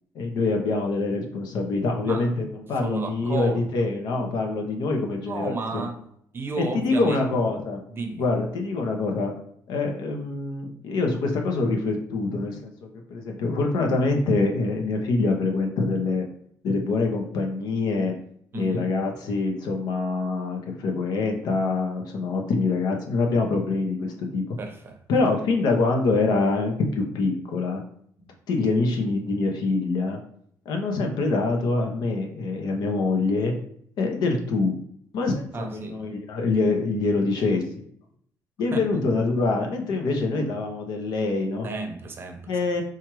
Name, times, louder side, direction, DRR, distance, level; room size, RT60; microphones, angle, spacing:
voice 1, 0.1-5.9 6.6-7.8 8.2-9.3 9.7-12.7 13.1-16.3 16.6-18.1 18.5-24.4 25.1-27.8 28.5-30.2 30.7-33.5 34.0-34.7 35.1-37.7 38.6-41.7 42.5-42.8, left 3 dB, 80° left, 0.8 m, -25 dB
voice 2, 2.7-3.9 5.3-6.0 6.3-7.3 7.9-8.2 18.5-18.9 24.6-25.0 35.5-36.0 38.7-38.8 41.6-42.5, right 3 dB, 35° right, 0.6 m, -32 dB
4.4 x 2.4 x 3.0 m
cardioid pair, 135°, 7 cm